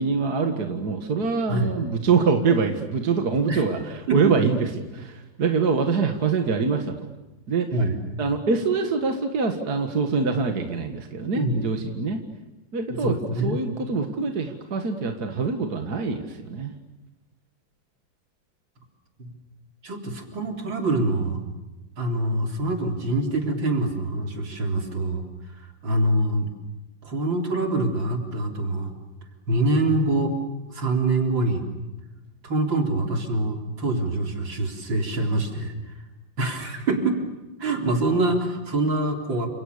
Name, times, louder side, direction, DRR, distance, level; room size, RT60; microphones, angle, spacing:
voice 1, 0.0-4.7 5.0-7.1 7.5-7.7 8.2-12.2 12.7-16.7, right 5 dB, 55° right, 4 dB, 2.4 m, -24 dB
voice 2, 13.0-13.6 19.2-19.3 19.8-21.4 22.0-25.2 25.8-26.5 27.0-28.9 29.5-30.3 30.7-31.6 32.4-35.7 36.4-37.2 37.6-39.5, right 2 dB, 85° right, 3 dB, 4.5 m, -25 dB
30.0 x 27.5 x 6.9 m, 1.1 s
omnidirectional pair, 2.0 m